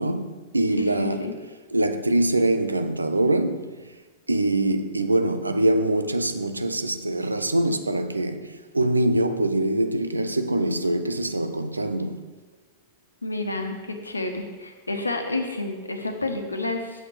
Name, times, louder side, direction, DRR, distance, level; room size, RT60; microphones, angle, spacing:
voice 1, 0.0-1.3 1.7-3.8 4.3-12.3, right 1 dB, 80° right, 0.6 m, -24 dB
voice 2, 0.8-1.3 13.2-17.1, left 2 dB, 80° left, 1.2 m, -30 dB
8.5 x 7.9 x 4.7 m
figure-of-eight pair, 90°, 0 cm